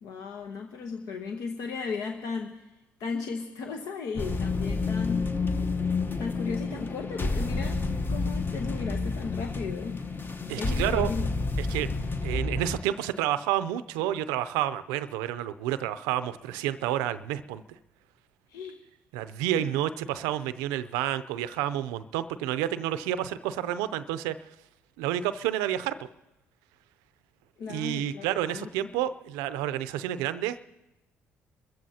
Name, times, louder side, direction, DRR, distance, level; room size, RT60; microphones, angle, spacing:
voice 1, 0.0-2.7 3.0-5.3 6.2-10.0 10.6-11.3 18.5-18.8 19.5-19.7 27.6-28.9, left 5 dB, 70° left, 5 dB, 1.0 m, -36 dB
sound 1, 4.2-12.8, left 3 dB, 30° left, 1.0 m, -30 dB
voice 2, 10.5-11.1 11.6-12.0 12.2-17.6 19.1-24.4 25.0-26.0 27.7-30.6, right 12 dB, 85° right, 13 dB, 0.5 m, -29 dB
25.0 x 14.5 x 2.8 m, 0.99 s
supercardioid pair, 60°, 6 cm